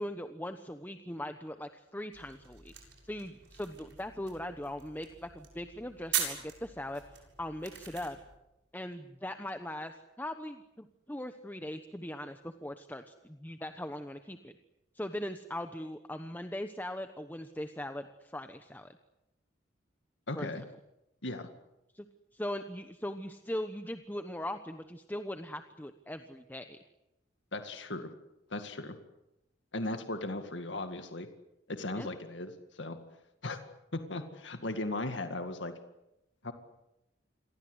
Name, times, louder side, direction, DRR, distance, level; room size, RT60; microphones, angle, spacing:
voice 1, 0.0-2.7 3.0-8.2 8.7-14.6 14.9-19.0 20.3-20.6 21.9-22.1 22.3-26.8 31.9-32.1, left 1 dB, 10° left, 8 dB, 1.1 m, -40 dB
sound 1, 2.1-8.4, right 9 dB, 65° right, 7.5 m, -41 dB
voice 2, 20.3-20.7 21.2-21.5 27.5-28.1 28.5-29.0 29.7-31.3 31.7-33.0 33.4-33.6 33.9-35.7 36.4-36.5, left 2 dB, 70° left, 7 dB, 2.1 m, -37 dB
28.5 x 22.5 x 8.1 m, 0.89 s
head